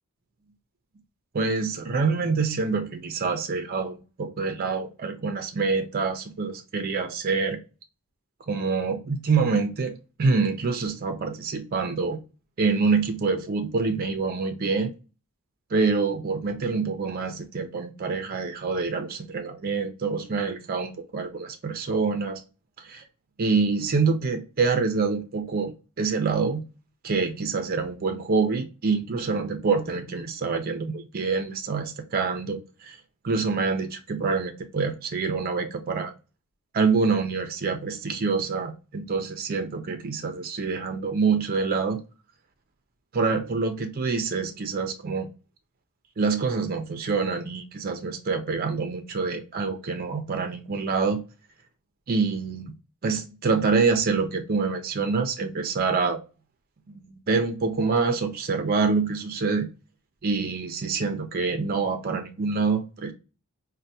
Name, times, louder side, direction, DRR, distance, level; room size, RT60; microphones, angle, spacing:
voice 1, 1.3-7.6 8.5-9.9 10.2-12.2 12.6-14.9 15.7-22.4 22.8-23.0 23.4-25.7 26.0-26.6 27.0-33.0 33.2-36.1 36.7-42.0 43.1-45.3 46.2-51.2 52.1-52.7 53.0-56.2 56.9-57.0 57.3-59.7 60.2-63.1, right 4 dB, 40° right, 0.4 m, -26 dB
4.4 x 2.1 x 2.7 m
head